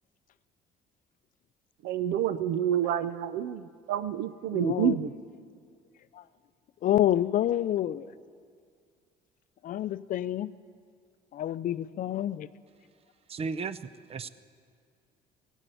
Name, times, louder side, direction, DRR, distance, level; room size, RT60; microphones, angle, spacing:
voice 1, 1.8-5.1, right 10 dB, 80° right, 14 dB, 0.7 m, -28 dB
voice 2, 4.5-5.0 6.1-6.2 6.8-8.1 9.6-10.5 11.3-12.5, left 12 dB, 50° left, 15 dB, 0.5 m, -28 dB
voice 3, 13.3-13.8 14.1-14.3, right 5 dB, 35° right, 15 dB, 0.6 m, -33 dB
17.5 x 8.1 x 9.1 m, 2.2 s
cardioid pair, 110°, 17 cm